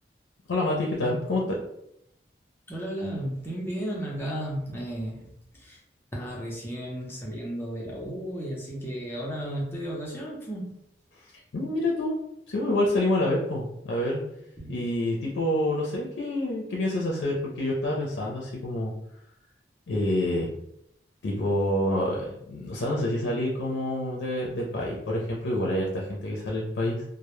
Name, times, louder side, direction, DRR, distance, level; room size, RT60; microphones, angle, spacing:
voice 1, 0.5-1.6 11.5-12.2 12.5-14.2 14.7-18.9 19.9-20.5 21.2-27.0, left 1 dB, 85° left, -3 dB, 0.4 m, -27 dB
voice 2, 2.7-5.3 5.5-5.8 6.1-10.7 14.6-14.8, right 1 dB, 15° left, -4 dB, 0.6 m, -34 dB
2.1 x 2.0 x 3.0 m, 0.78 s
head